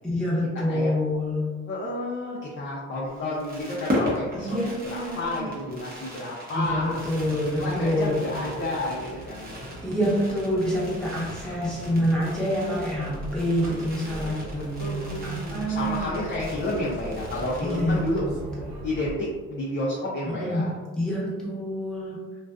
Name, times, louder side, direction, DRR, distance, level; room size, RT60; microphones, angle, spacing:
voice 1, 0.0-1.5 4.3-5.5 6.5-8.2 9.8-16.0 17.6-18.7 20.4-20.7 21.0-22.2, equal, ahead, -7 dB, 0.9 m, -27 dB
voice 2, 1.7-4.6 4.8-7.0 7.6-9.7 11.4-11.6 14.1-18.2 18.8-20.7, left 1 dB, 40° left, -5 dB, 0.6 m, -31 dB
Fireworks, 3.0-18.2 18.5-18.6 18.8-19.1, left 1 dB, 30° right, 0.8 m, -37 dB
sound 1, 6.6-19.2, right 1 dB, 75° right, 0.6 m, -40 dB
2.4 x 2.3 x 2.2 m, 1.4 s
cardioid pair, 90°, 30 cm